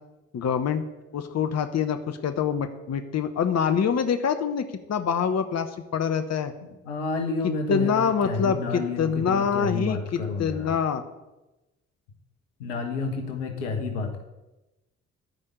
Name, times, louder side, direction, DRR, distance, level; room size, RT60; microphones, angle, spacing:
voice 1, 0.3-0.8 1.1-6.5 7.7-11.0, left 7 dB, 45° left, 8 dB, 1.1 m, -25 dB
voice 2, 6.8-10.7 12.6-14.2, left 3 dB, 80° left, 4 dB, 1.5 m, -30 dB
13.0 x 5.5 x 8.2 m, 1.0 s
hypercardioid pair, 40°, 37 cm